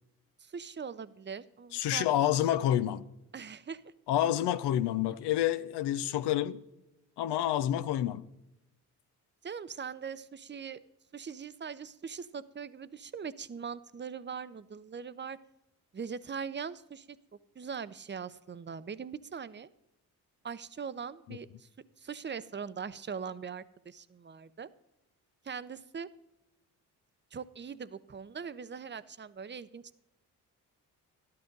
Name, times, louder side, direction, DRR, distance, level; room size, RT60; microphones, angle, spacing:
voice 1, 0.4-2.1 3.3-3.8 9.4-10.8 11.1-15.4 15.9-17.2 17.6-19.7 20.4-21.7 22.0-24.7 25.4-26.1 27.3-30.0, right 6 dB, 25° right, 0.7 m, -41 dB
voice 2, 1.7-3.0 4.1-6.6 7.2-8.2 21.3-21.4, left 11 dB, 80° left, 0.7 m, -28 dB
12.5 x 11.5 x 3.9 m
supercardioid pair, 50°, 40 cm